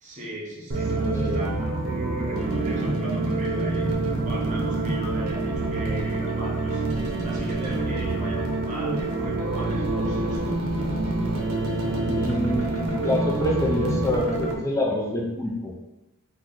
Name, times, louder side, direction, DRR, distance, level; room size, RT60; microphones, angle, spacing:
voice 1, 0.0-3.9 4.2-6.8 7.2-10.5, right 1 dB, 35° right, -4 dB, 0.9 m, -38 dB
sound 1, 0.7-14.5, right 2 dB, 70° right, 0.7 m, -26 dB
voice 2, 1.0-1.4 11.9-15.7, left 1 dB, 15° left, -2 dB, 0.5 m, -27 dB
3.0 x 2.3 x 3.8 m, 0.96 s
head